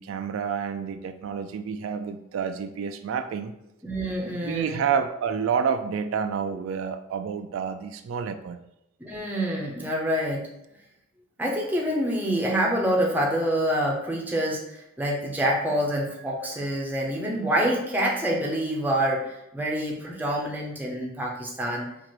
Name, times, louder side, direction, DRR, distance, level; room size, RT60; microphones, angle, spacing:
voice 1, 0.0-3.5 4.3-8.6, right 6 dB, 80° right, 8 dB, 0.3 m, -29 dB
voice 2, 3.8-4.8 9.0-10.5 11.4-21.9, equal, 10° right, -2 dB, 0.6 m, -26 dB
4.5 x 2.5 x 3.0 m, 0.85 s
head